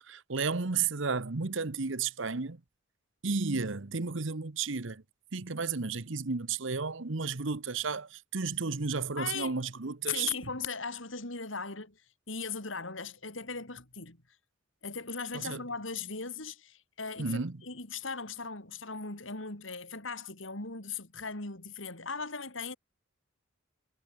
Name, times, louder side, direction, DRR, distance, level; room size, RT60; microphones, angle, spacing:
voice 1, 0.1-2.6 3.2-5.0 5.3-10.3 15.3-15.6 17.2-17.6, right 4 dB, 70° right, 1.1 m, -33 dB
voice 2, 9.2-9.6 10.1-12.0 12.3-14.2 14.8-22.8, left 5 dB, 70° left, 4.6 m, -38 dB
head